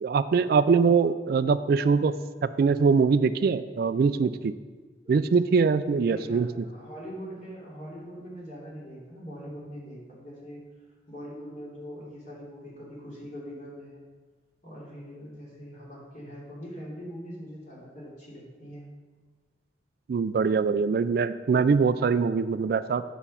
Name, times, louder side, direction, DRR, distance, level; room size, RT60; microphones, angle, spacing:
voice 1, 0.0-2.2 2.4-4.5 5.1-6.5 20.1-23.0, right 5 dB, 55° right, 13 dB, 0.3 m, -23 dB
voice 2, 6.1-10.7 11.1-14.0 14.6-18.9, equal, 40° left, -5 dB, 3.0 m, -42 dB
8.8 x 6.1 x 5.6 m, 1.4 s
head